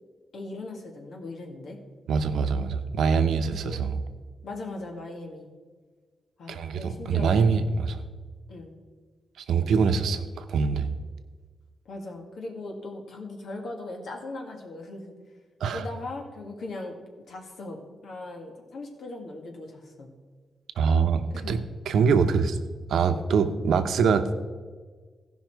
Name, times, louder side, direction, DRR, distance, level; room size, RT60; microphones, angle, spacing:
voice 1, 0.3-1.8 3.5-3.9 4.4-5.5 6.4-7.5 8.5-8.7 11.9-15.1 15.7-16.9 17.3-20.1 21.3-21.5, left 2 dB, 70° left, 1 dB, 1.8 m, -39 dB
voice 2, 2.1-4.0 6.5-8.0 9.4-10.9 15.6-15.9 20.8-21.6 21.9-22.6 22.9-24.3, right 5 dB, 90° right, 9 dB, 0.7 m, -24 dB
16.5 x 5.5 x 4.6 m, 1.5 s
wide cardioid pair, 135°, 0 cm